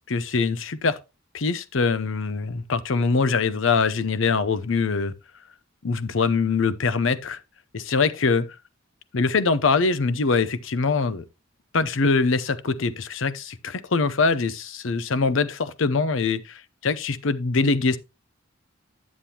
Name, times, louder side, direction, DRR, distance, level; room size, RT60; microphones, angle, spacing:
voice 1, 0.1-1.0 1.3-5.1 5.8-7.4 7.7-8.5 9.1-11.2 11.7-18.0, left 4 dB, 70° left, 0.6 m, -23 dB
10.0 x 7.3 x 2.9 m
head